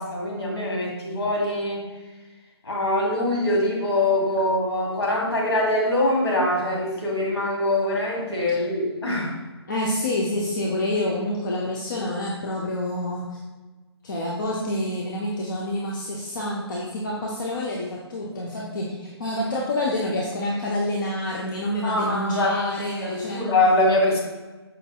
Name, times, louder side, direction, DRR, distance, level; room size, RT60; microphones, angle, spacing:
voice 1, 0.0-1.8 2.6-9.4 21.8-22.5 23.0-24.2, left 1 dB, 70° left, -2 dB, 1.2 m, -23 dB
voice 2, 9.7-13.4 14.0-23.6, left 1 dB, 45° left, -3 dB, 0.5 m, -27 dB
5.1 x 2.6 x 2.2 m, 1.2 s
figure-of-eight pair, 145°, 14 cm